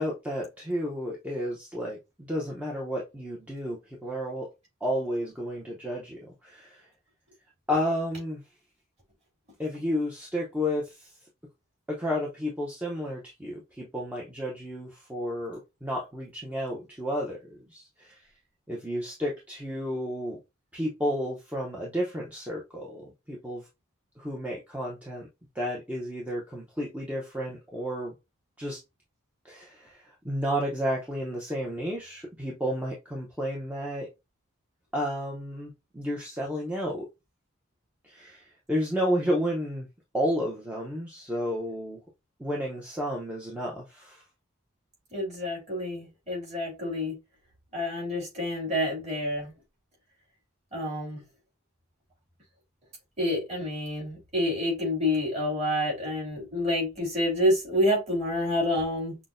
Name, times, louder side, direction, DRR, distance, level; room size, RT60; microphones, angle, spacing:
voice 1, 0.0-4.5 4.8-6.9 7.7-8.4 9.6-11.1 11.9-18.3 18.7-20.4 20.7-23.7 24.2-25.3 25.5-28.1 28.6-28.8 29.4-34.1 34.9-37.1 38.0-39.9 40.1-42.0 42.4-44.2, equal, 5° right, 0.7 m, -32 dB
voice 2, 45.1-47.2 47.7-49.5 50.7-51.2 53.2-59.2, left 1 dB, 30° right, 2.4 m, -28 dB
5.9 x 2.1 x 2.5 m
head